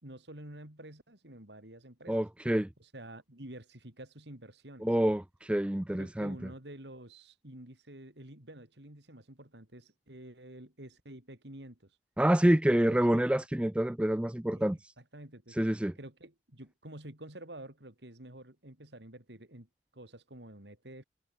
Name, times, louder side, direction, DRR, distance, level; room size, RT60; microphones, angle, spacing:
voice 1, 0.0-2.2 2.8-4.9 5.9-11.9 12.7-13.2 14.5-14.6 15.0-15.6 16.0-21.0, right 1 dB, 80° right, 4.7 m, -49 dB
voice 2, 2.1-2.7 4.8-6.4 12.2-14.8 15.6-15.9, right 1 dB, 5° right, 0.4 m, -27 dB
head